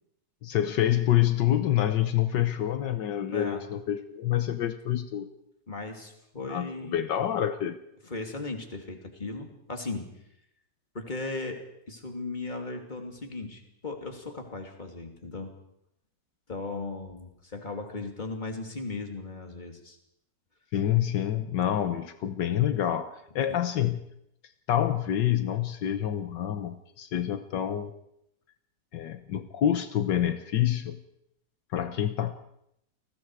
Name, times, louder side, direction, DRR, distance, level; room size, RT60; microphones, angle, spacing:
voice 1, 0.4-5.3 6.5-7.8 20.7-24.0 24.7-27.9 28.9-31.0 31.7-32.3, left 11 dB, 75° left, 9 dB, 1.6 m, -27 dB
voice 2, 3.2-3.6 5.7-7.0 8.0-10.1 10.9-11.6 11.9-15.6 16.5-20.0 23.5-23.6, left 3 dB, 25° left, 3 dB, 2.9 m, -37 dB
29.0 x 19.5 x 4.8 m, 0.77 s
omnidirectional pair, 1.9 m